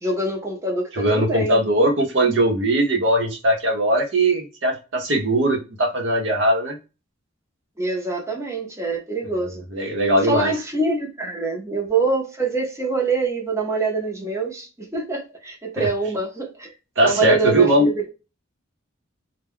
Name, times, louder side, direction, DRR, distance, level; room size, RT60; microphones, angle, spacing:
voice 1, 0.0-1.6 7.8-9.6 10.2-16.7 17.0-18.1, right 3 dB, 15° right, 0.7 m, -25 dB
voice 2, 0.9-6.8 9.4-10.5 15.8-15.9 17.0-17.9, right 1 dB, 75° right, 0.8 m, -20 dB
2.2 x 2.2 x 3.4 m
head